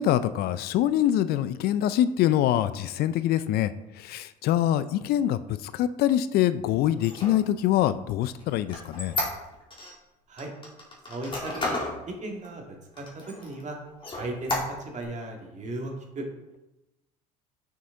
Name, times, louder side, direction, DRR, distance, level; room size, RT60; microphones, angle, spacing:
voice 1, 0.0-9.2, left 12 dB, 60° left, 14 dB, 0.4 m, -25 dB
Squeak, 6.9-9.9 10.4-12.0 12.4-12.5 12.9-13.6 14.0-15.0, left 2 dB, 25° left, 2.6 m, -32 dB
voice 2, 11.0-11.8 12.2-13.8 14.1-16.3, right 2 dB, 40° right, 2 dB, 2.0 m, -36 dB
6.9 x 6.5 x 3.8 m, 0.96 s
hypercardioid pair, 70°, 18 cm